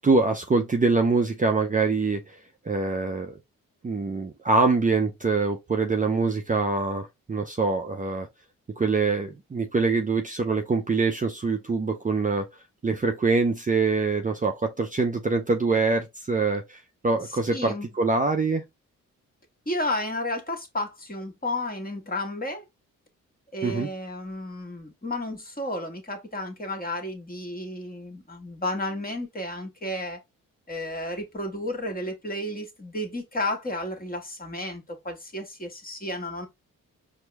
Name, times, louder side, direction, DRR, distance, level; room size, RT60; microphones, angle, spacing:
voice 1, 0.0-2.4 2.6-3.4 3.8-8.3 8.8-12.5 12.8-18.6 23.6-23.9, right 3 dB, 25° right, 0.6 m, -24 dB
voice 2, 17.5-17.9 19.6-22.6 23.5-30.2 30.7-36.5, left 1 dB, 25° left, 1.5 m, -32 dB
4.5 x 2.1 x 3.4 m
supercardioid pair, 50°, 35 cm